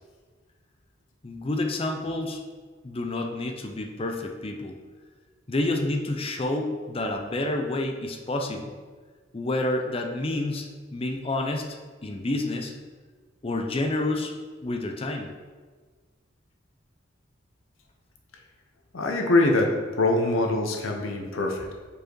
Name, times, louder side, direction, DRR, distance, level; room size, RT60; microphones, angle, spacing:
voice 1, 1.2-2.4 2.8-4.8 5.5-8.7 9.3-10.7 10.9-11.8 12.0-12.7 13.4-14.3 14.6-15.3, left 2 dB, 30° left, 3 dB, 0.5 m, -29 dB
voice 2, 18.9-21.7, left 2 dB, 85° left, 2 dB, 0.9 m, -23 dB
4.9 x 4.8 x 4.5 m, 1.5 s
head